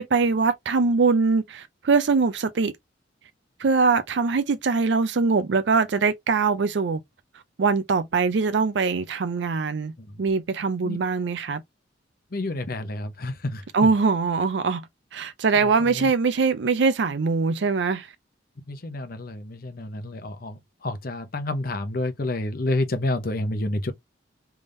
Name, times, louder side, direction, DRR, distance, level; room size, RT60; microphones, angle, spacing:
voice 1, 0.0-2.7 3.6-7.0 7.6-9.9 10.2-11.6 13.7-14.9 15.1-18.1, right 4 dB, 65° right, 0.5 m, -22 dB
voice 2, 12.3-13.6 16.0-16.1 18.7-23.9, left 2 dB, 50° left, 0.8 m, -29 dB
3.5 x 3.4 x 2.5 m
head